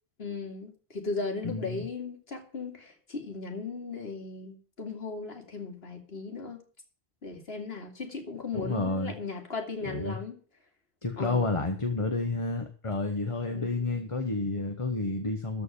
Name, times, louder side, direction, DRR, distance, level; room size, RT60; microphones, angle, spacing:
voice 1, 0.2-6.6 7.2-10.4 11.2-11.5 13.5-14.0, left 4 dB, 70° left, 2.6 m, -37 dB
voice 2, 1.4-1.9 8.5-9.1 9.8-10.2 11.0-15.6, left 3 dB, 30° left, 1.2 m, -30 dB
14.0 x 4.6 x 8.9 m
omnidirectional pair, 1.1 m